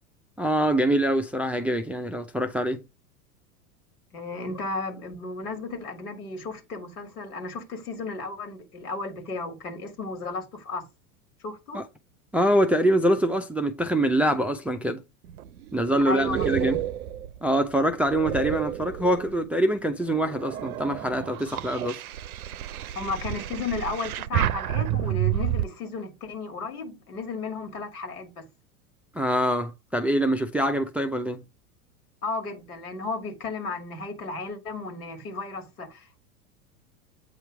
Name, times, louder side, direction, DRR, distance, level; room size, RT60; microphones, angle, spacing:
voice 1, 0.4-2.8 11.7-11.8 12.3-15.0 15.7-16.8 17.4-22.0 29.1-31.4, right 1 dB, 5° right, 0.4 m, -24 dB
voice 2, 4.1-10.8 11.4-11.8 16.1-16.8 23.0-28.3 32.2-36.2, left 3 dB, 75° left, 2.2 m, -34 dB
sound 1, 15.2-19.5 20.0-25.7, right 12 dB, 70° right, 0.6 m, -30 dB
8.3 x 3.0 x 4.7 m
hypercardioid pair, 90°, 45 cm